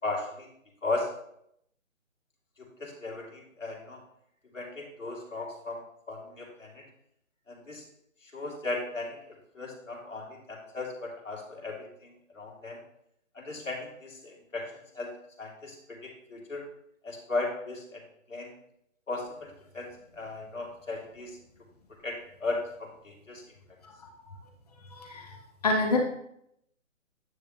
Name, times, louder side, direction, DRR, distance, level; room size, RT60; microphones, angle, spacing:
voice 1, 0.0-0.5 0.8-1.1 2.8-4.0 4.5-5.8 6.1-6.8 7.5-7.8 8.3-9.2 9.6-12.8 13.3-14.7 14.9-15.1 15.4-16.7 17.0-18.0 18.3-18.5 19.1-19.9 20.1-21.4 22.0-23.4, left 3 dB, 70° left, -1 dB, 2.9 m, -36 dB
voice 2, 25.0-25.3 25.6-26.0, left 2 dB, 30° left, 1 dB, 1.0 m, -26 dB
9.5 x 6.5 x 3.1 m, 0.74 s
figure-of-eight pair, 150°, 40 cm